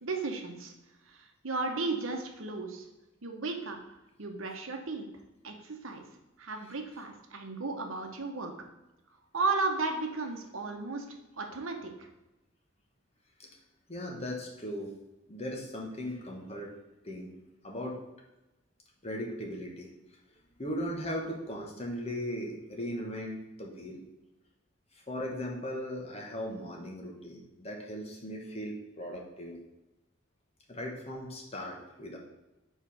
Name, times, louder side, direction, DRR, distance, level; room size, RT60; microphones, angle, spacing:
voice 1, 0.0-0.7 1.1-2.8 3.2-3.8 4.2-5.1 5.4-6.0 6.4-8.5 9.3-11.0 11.4-11.9, right 3 dB, 70° right, 4 dB, 1.0 m, -34 dB
voice 2, 13.9-15.0 15.3-16.7 17.0-17.3 17.6-18.0 19.0-19.9 20.6-24.0 24.9-29.6 30.7-32.2, equal, 30° left, 0 dB, 1.2 m, -38 dB
4.8 x 4.6 x 5.5 m, 0.99 s
head